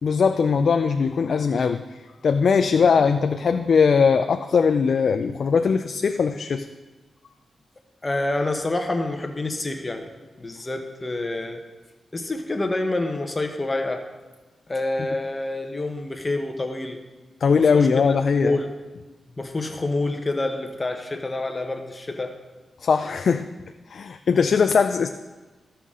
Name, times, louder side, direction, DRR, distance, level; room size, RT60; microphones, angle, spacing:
voice 1, 0.0-1.8 2.2-6.7 17.4-18.5 22.8-23.5 23.9-25.1, left 5 dB, 70° left, 7 dB, 0.4 m, -20 dB
voice 2, 8.0-10.1 10.4-11.6 12.1-14.0 14.7-17.0 17.6-18.1 18.4-18.7 19.4-22.4, left 2 dB, 30° left, 5 dB, 0.9 m, -27 dB
15.0 x 5.8 x 3.7 m, 1.2 s
cardioid pair, 65°, 0 cm